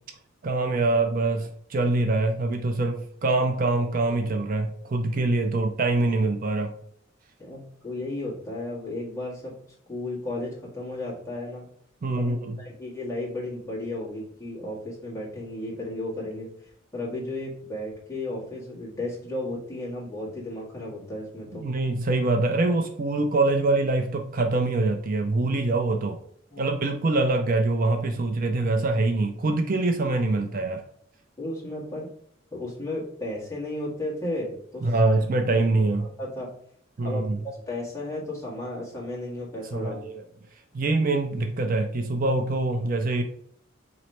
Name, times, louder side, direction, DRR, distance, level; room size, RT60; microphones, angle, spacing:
voice 1, 0.4-6.7 12.0-12.6 21.6-26.2 26.6-30.8 34.8-36.1 37.0-37.4 39.7-40.2 40.7-43.2, right 2 dB, 45° right, 4 dB, 0.5 m, -24 dB
voice 2, 7.4-9.5 9.9-11.6 12.2-21.6 26.5-26.7 31.4-32.1 32.5-35.0 35.5-35.6 36.0-36.5 37.0-40.0, left 1 dB, 15° left, -6 dB, 1.8 m, -34 dB
4.0 x 3.1 x 4.2 m, 0.66 s
head